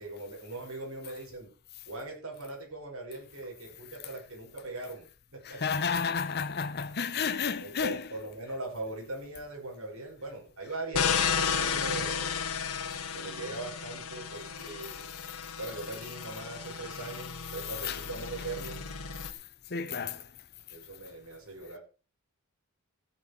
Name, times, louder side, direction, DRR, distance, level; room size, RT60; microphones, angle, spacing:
voice 1, 0.0-1.5 1.9-5.6 7.6-12.3 13.1-15.1 15.6-18.9 19.7-20.2 20.7-21.8, right 2 dB, 70° right, 5.6 m, -40 dB
voice 2, 5.4-8.1 14.8-15.0 17.8-18.0 19.2-19.4 19.7-20.3, left 6 dB, 50° left, 0.8 m, -32 dB
sound 1, 10.9-19.3, left 6 dB, 85° left, 1.4 m, -33 dB
15.5 x 8.1 x 4.5 m
head